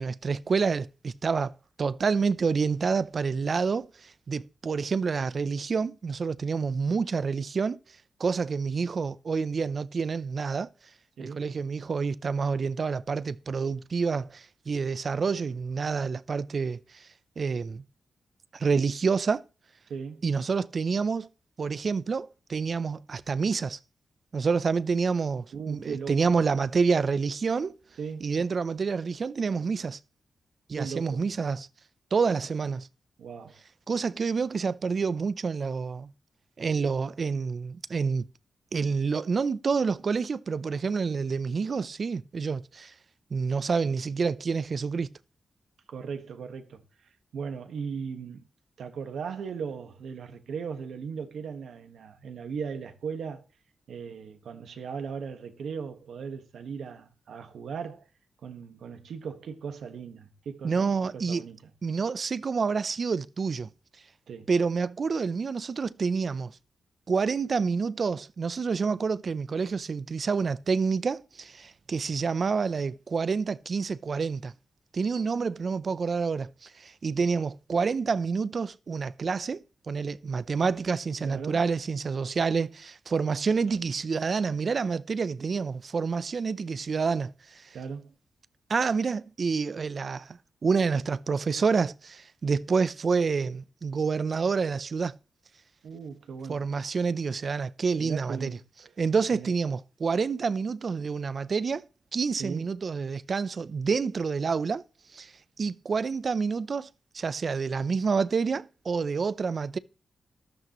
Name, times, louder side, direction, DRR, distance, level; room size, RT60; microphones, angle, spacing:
voice 1, 0.0-1.5 1.8-7.8 8.2-10.7 11.2-17.1 17.4-17.8 18.5-19.4 20.2-21.3 21.6-23.8 24.3-27.7 28.2-30.0 30.7-31.7 32.1-32.9 33.9-36.1 36.6-38.3 38.7-42.9 43.3-45.1 60.6-61.5 61.8-63.7 64.5-66.5 67.1-74.5 74.9-87.7 88.7-95.1 96.5-98.6 99.0-101.9 102.1-104.8 105.1-105.3 105.6-106.9 107.1-109.8, right 5 dB, 50° right, 0.6 m, -28 dB
voice 2, 11.2-11.5 19.9-20.3 25.5-26.2 28.0-28.3 30.8-31.2 33.2-33.6 45.9-46.8 47.3-48.4 48.8-53.4 53.9-58.0 58.4-61.7 64.3-64.5 81.2-81.6 83.7-83.8 87.7-88.1 95.8-96.6 98.0-98.9 99.3-99.5 102.4-102.7, right 6 dB, 85° right, 1.6 m, -38 dB
13.0 x 12.5 x 3.1 m
cardioid pair, 85°, 0 cm